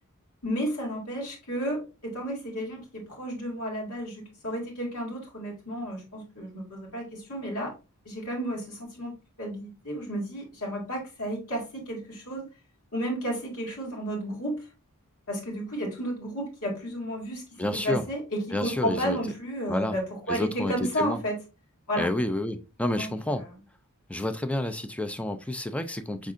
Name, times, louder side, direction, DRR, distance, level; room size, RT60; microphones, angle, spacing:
voice 1, 0.4-7.7 8.1-12.5 12.9-14.7 15.3-21.4 21.9-22.1 23.0-23.1 23.4-23.5, equal, 75° left, -2 dB, 2.0 m, -32 dB
voice 2, 17.6-18.0 18.5-19.2 19.7-20.0 20.3-21.2 22.0-23.4 24.1-26.3, left 1 dB, 5° left, 9 dB, 0.4 m, -29 dB
5.3 x 3.6 x 2.4 m, 0.29 s
head